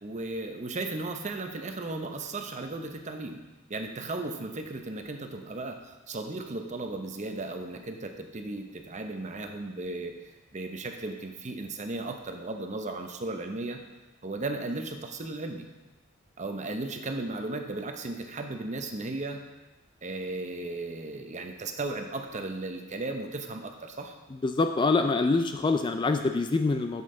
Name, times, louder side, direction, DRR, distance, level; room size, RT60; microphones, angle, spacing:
voice 1, 0.0-3.4 3.7-10.2 10.5-13.8 14.2-15.7 16.4-19.4 20.0-24.1, right 2 dB, 35° right, 5 dB, 0.7 m, -35 dB
voice 2, 24.3-27.0, left 3 dB, 25° left, 7 dB, 0.3 m, -25 dB
7.9 x 7.2 x 3.8 m, 1.1 s
head